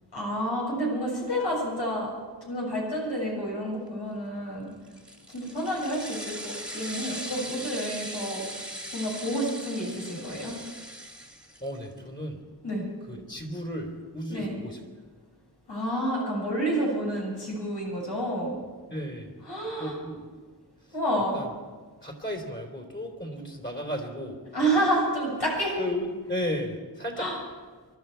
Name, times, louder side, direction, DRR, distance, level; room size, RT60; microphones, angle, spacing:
voice 1, 0.1-2.1 2.4-4.7 5.3-8.6 8.9-10.5 12.6-12.8 14.3-14.6 15.7-18.5 19.4-19.9 20.9-21.4 24.5-25.8 27.2-27.4, right 1 dB, 75° left, -3 dB, 6.7 m, -29 dB
sound 1, 4.9-11.8, equal, ahead, 2.3 m, -39 dB
voice 2, 11.6-12.4 13.1-14.8 18.9-19.3 19.8-20.2 21.3-21.5 22.0-24.4 25.8-27.3, left 1 dB, 25° left, 3 dB, 3.6 m, -34 dB
24.0 x 13.0 x 4.6 m, 1.4 s
wide cardioid pair, 70°, 42 cm